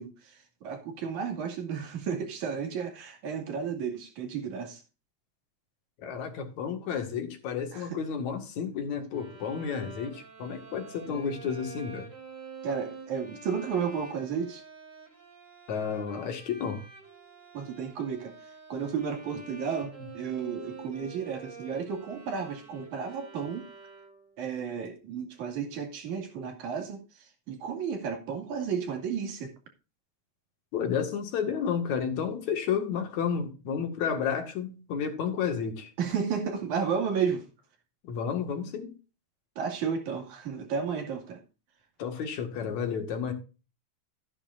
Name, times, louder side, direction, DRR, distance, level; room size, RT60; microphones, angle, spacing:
voice 1, 0.0-4.8 7.7-7.9 11.1-11.2 12.6-14.6 17.5-18.4 18.7-23.7 24.4-29.5 36.0-37.5 39.6-41.4, right 6 dB, 85° right, 4.0 m, -33 dB
voice 2, 6.0-12.1 15.7-16.8 30.7-35.9 38.0-38.9 42.0-43.3, left 7 dB, 70° left, 3.3 m, -31 dB
Bowed string instrument, 9.1-24.4, right 4 dB, 25° right, 3.2 m, -47 dB
14.0 x 9.9 x 2.6 m
omnidirectional pair, 3.3 m